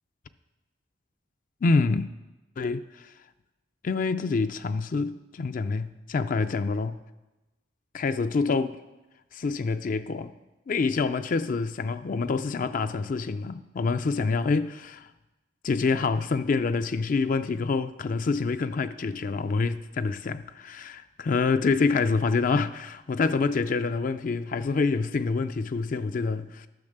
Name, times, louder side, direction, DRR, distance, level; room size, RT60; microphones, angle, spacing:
voice 1, 1.6-2.1 2.6-3.1 3.8-7.0 7.9-8.8 9.3-10.3 10.7-15.1 15.6-26.7, left 4 dB, 45° left, 0.4 m, -26 dB
10.5 x 6.4 x 6.6 m
head